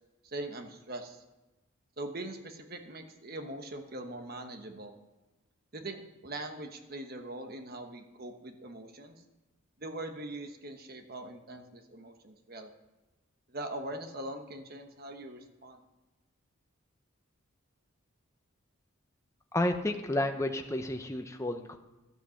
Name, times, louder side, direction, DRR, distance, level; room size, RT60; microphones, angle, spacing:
voice 1, 0.2-1.2 2.0-4.9 5.7-9.1 9.8-12.7 13.5-15.8, right 1 dB, 45° right, 6 dB, 1.2 m, -42 dB
voice 2, 19.5-21.8, left 1 dB, 15° left, 5 dB, 0.7 m, -31 dB
12.5 x 8.5 x 6.5 m, 1.1 s
head